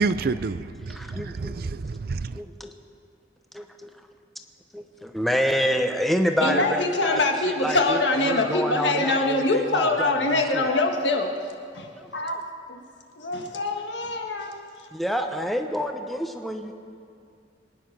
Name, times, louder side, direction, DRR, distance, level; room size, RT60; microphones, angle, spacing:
voice 1, 0.0-2.4, right 4 dB, 55° right, 0.5 m, -28 dB
voice 2, 0.8-1.5 2.3-2.7 3.5-3.9 4.7-7.2 7.5-10.7 11.9-12.4 14.9-16.7, equal, ahead, 0.9 m, -28 dB
voice 3, 6.4-11.3 11.7-12.4 12.7-12.8 13.2-14.6 15.2-15.3, left 2 dB, 75° left, 1.7 m, -24 dB
24.0 x 10.0 x 5.9 m
head